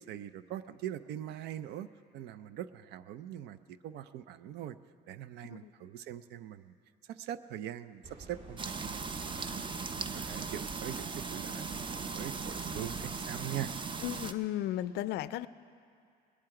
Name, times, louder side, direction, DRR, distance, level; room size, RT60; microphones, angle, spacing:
voice 1, 0.0-4.8 5.1-6.7 7.0-9.7 10.0-13.7, right 11 dB, 80° right, 14 dB, 0.5 m, -42 dB
sound 1, 8.0-13.1, right 2 dB, 45° right, 2.4 m, -49 dB
sound 2, 8.6-14.3, right 5 dB, 30° right, 0.6 m, -38 dB
voice 2, 14.0-15.5, left 13 dB, 80° left, 17 dB, 0.4 m, -35 dB
19.5 x 10.5 x 4.9 m, 2.4 s
cardioid pair, 110°, 17 cm